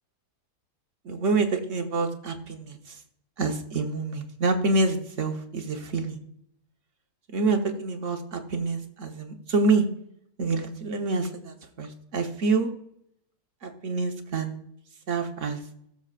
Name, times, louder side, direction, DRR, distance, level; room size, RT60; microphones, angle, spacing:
voice 1, 1.0-3.0 3.4-6.2 7.3-9.9 10.4-12.7 13.6-14.6 15.1-15.6, right 3 dB, 50° right, 4 dB, 1.4 m, -27 dB
19.0 x 7.2 x 2.5 m, 0.73 s
omnidirectional pair, 1.8 m